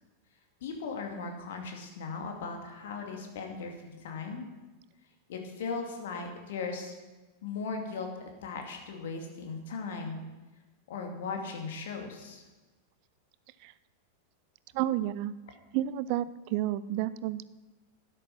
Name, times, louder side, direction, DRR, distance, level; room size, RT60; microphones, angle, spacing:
voice 1, 0.6-4.5 5.3-6.9 7.4-8.1 8.4-10.2 10.9-12.4, left 4 dB, 55° left, 3 dB, 2.3 m, -38 dB
voice 2, 14.7-15.3 15.7-17.5, right 13 dB, 45° right, 17 dB, 0.5 m, -31 dB
12.5 x 10.0 x 5.7 m, 1.2 s
figure-of-eight pair, 90°, 0 cm